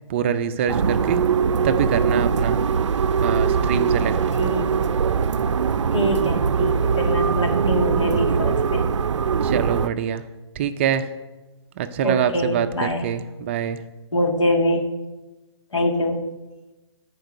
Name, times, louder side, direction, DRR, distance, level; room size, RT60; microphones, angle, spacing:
voice 1, 0.1-1.2 1.6-2.6 3.2-4.1 9.4-10.2 10.6-11.1 11.8-13.8, right 8 dB, 25° right, 10 dB, 0.4 m, -24 dB
sound 1, 0.7-9.9, right 6 dB, 85° right, 0.4 m, -21 dB
voice 2, 5.9-8.8 12.0-13.0 14.1-14.8 15.7-16.2, equal, 85° left, 3 dB, 1.9 m, -24 dB
13.0 x 4.6 x 5.1 m, 1.1 s
hypercardioid pair, 150°, 15 cm